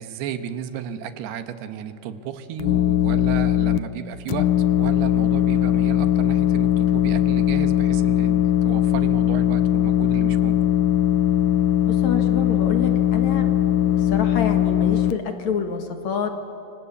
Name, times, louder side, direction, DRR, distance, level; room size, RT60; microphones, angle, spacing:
voice 1, 0.0-10.6, right 8 dB, 85° right, 10 dB, 3.2 m, -33 dB
sound 1, 2.6-3.8 4.3-15.1, left 11 dB, 80° left, 1.9 m, -20 dB
voice 2, 11.9-13.5 14.0-16.3, left 6 dB, 55° left, 5 dB, 2.5 m, -27 dB
28.0 x 25.5 x 8.4 m, 2.8 s
omnidirectional pair, 4.5 m